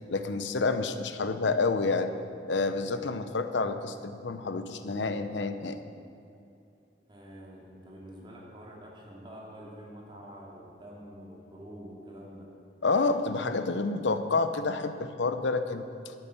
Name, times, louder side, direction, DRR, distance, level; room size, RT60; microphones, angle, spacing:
voice 1, 0.1-2.1 2.5-5.8 12.8-16.1, left 3 dB, 75° left, 9 dB, 0.8 m, -29 dB
voice 2, 7.1-12.5, equal, 25° right, -4 dB, 2.5 m, -47 dB
12.5 x 8.4 x 6.9 m, 2.7 s
head